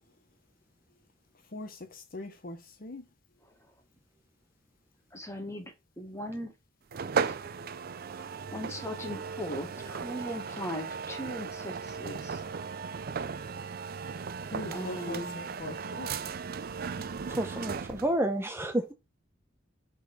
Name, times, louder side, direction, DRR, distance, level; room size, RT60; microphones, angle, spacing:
voice 1, 1.5-3.0 14.5-16.1, left 2 dB, 45° left, 0.9 m, -41 dB
voice 2, 5.1-6.5 7.2-7.8 8.1-12.4 14.7-15.4, equal, 15° left, 1.5 m, -39 dB
sound 1, 6.9-18.2, right 5 dB, 50° right, 0.4 m, -36 dB
voice 3, 17.3-18.9, right 1 dB, 10° right, 0.7 m, -30 dB
7.3 x 4.0 x 4.0 m
head